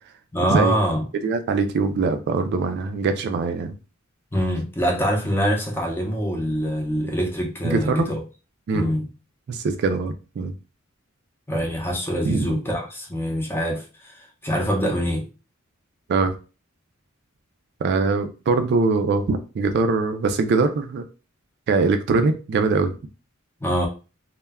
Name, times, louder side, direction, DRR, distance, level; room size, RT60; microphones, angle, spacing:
voice 1, 0.3-1.0 4.3-8.2 8.7-9.1 11.5-15.3 23.6-23.9, equal, 10° left, 0.6 m, -24 dB
voice 2, 1.1-3.8 7.6-8.1 8.7-8.9 9.5-10.5 12.2-12.6 16.1-16.3 17.8-21.1 21.7-22.9, right 4 dB, 55° right, 0.3 m, -22 dB
2.1 x 2.1 x 3.4 m
head